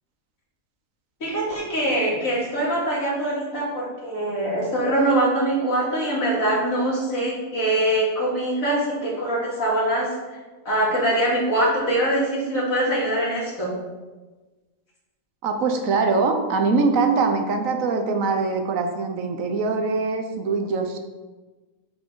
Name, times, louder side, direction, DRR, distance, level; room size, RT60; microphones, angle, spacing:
voice 1, 1.2-10.1 10.7-13.7, right 1 dB, 80° left, -5 dB, 2.5 m, -23 dB
voice 2, 15.4-21.0, right 4 dB, 75° right, 6 dB, 1.2 m, -23 dB
6.5 x 5.9 x 3.8 m, 1.2 s
omnidirectional pair, 1.4 m